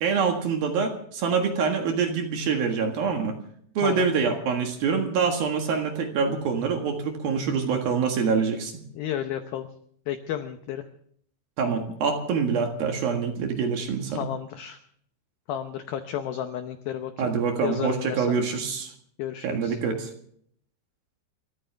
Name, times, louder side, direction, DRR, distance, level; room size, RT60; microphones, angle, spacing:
voice 1, 0.0-3.4 3.7-8.8 11.6-14.3 17.2-18.9 19.4-20.1, right 5 dB, 60° right, 4 dB, 3.0 m, -25 dB
voice 2, 8.9-9.7 10.1-10.8 14.1-14.8 15.5-17.3 17.6-18.4 19.2-19.8, left 10 dB, 90° left, 7 dB, 2.1 m, -32 dB
28.5 x 14.0 x 3.4 m, 0.63 s
omnidirectional pair, 5.6 m